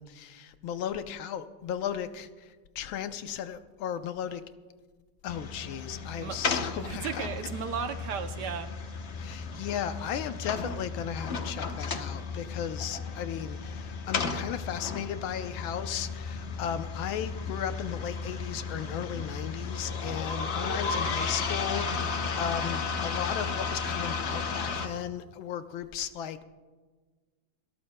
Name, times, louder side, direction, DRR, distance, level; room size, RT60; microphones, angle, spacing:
voice 1, 0.0-2.5 2.7-4.4 5.2-7.1 9.2-26.4, left 9 dB, 80° left, 10 dB, 1.5 m, -36 dB
sound 1, 5.3-24.9, left 4 dB, 45° left, 0.9 m, -34 dB
voice 2, 6.7-9.0, right 7 dB, 65° right, 8 dB, 1.1 m, -35 dB
30.0 x 13.0 x 2.2 m, 1.4 s
omnidirectional pair, 2.2 m